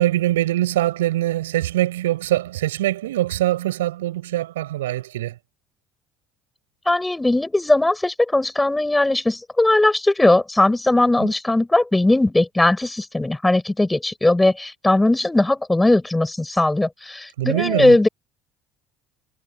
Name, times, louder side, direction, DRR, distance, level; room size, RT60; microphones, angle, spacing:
voice 1, 0.0-5.3 11.2-11.3 17.4-17.9, right 14 dB, 85° right, 7.9 m, -23 dB
voice 2, 6.9-18.1, left 2 dB, 10° left, 6.4 m, -19 dB
hypercardioid pair, 60°, 0 cm